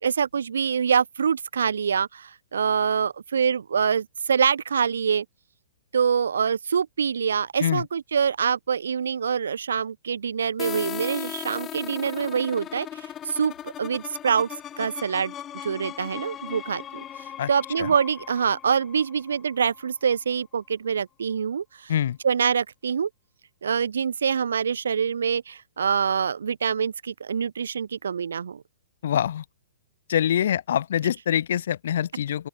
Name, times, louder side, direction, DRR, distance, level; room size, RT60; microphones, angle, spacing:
voice 1, 0.0-5.2 5.9-14.5 14.8-15.3 15.6-17.0 17.5-21.9 22.2-23.1 23.6-28.6, right 7 dB, 80° right, 3.1 m, -25 dB
Rough Love Sweep, 10.6-20.2, left 10 dB, 20° left, 2.6 m, -38 dB
voice 2, 29.0-29.4 30.1-32.5, left 10 dB, 65° left, 1.0 m, -24 dB
open air
hypercardioid pair, 130°, 0 cm